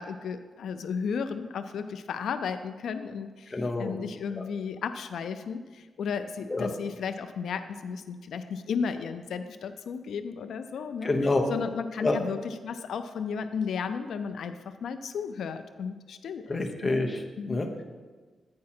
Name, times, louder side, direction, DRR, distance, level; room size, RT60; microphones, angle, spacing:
voice 1, 0.0-3.5 3.8-11.1 11.5-17.0 17.4-17.7, left 6 dB, 85° left, 9 dB, 0.3 m, -34 dB
voice 2, 3.5-4.0 4.3-4.4 6.5-6.7 11.0-11.5 12.0-12.2 16.5-17.8, left 2 dB, 20° left, 2 dB, 0.7 m, -28 dB
8.4 x 4.8 x 4.3 m, 1.4 s
wide cardioid pair, 175°, 0 cm